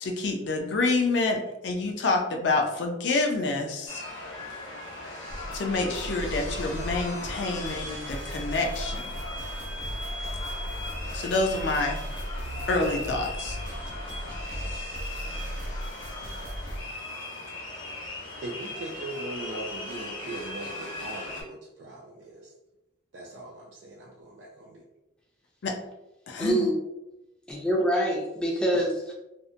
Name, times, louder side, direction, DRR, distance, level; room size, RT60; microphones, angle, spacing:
voice 1, 0.0-4.0 5.5-9.1 11.1-12.0 12.7-13.6 25.6-25.8 26.3-26.7, left 3 dB, 65° left, 2 dB, 0.4 m, -27 dB
sound 1, 3.9-21.4, left 2 dB, 80° left, 0.8 m, -38 dB
sound 2, 5.3-16.8, equal, 85° right, 0.7 m, -37 dB
voice 2, 18.4-22.5 23.1-24.8, right 2 dB, 70° right, -3 dB, 0.4 m, -40 dB
voice 3, 26.4-26.8 27.5-29.1, equal, 5° left, -3 dB, 0.4 m, -25 dB
2.6 x 2.1 x 2.5 m, 0.93 s
head